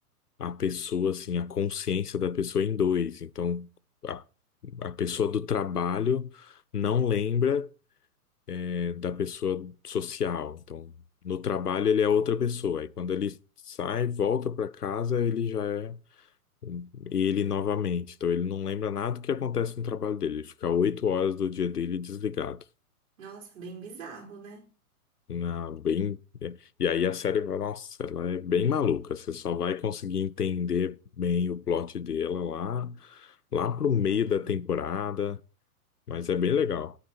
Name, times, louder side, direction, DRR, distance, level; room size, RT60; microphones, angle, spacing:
voice 1, 0.4-3.7 4.0-4.2 4.6-7.7 8.5-10.9 11.2-13.4 13.7-16.0 16.6-22.6 25.3-35.4 36.1-37.0, left 7 dB, 90° left, 0.6 m, -29 dB
voice 2, 23.2-24.7 34.1-34.6, right 5 dB, 55° right, 4.9 m, -44 dB
15.5 x 10.0 x 3.0 m
figure-of-eight pair, 110°, 45 cm